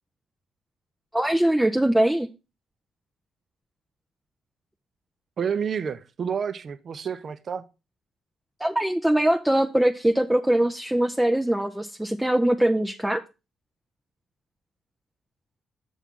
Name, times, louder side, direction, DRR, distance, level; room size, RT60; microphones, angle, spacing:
voice 1, 1.1-2.3 8.6-13.2, right 1 dB, 5° right, 0.5 m, -22 dB
voice 2, 5.4-7.6, right 7 dB, 50° right, 0.6 m, -29 dB
7.1 x 7.1 x 3.7 m
cardioid pair, 90°, 0 cm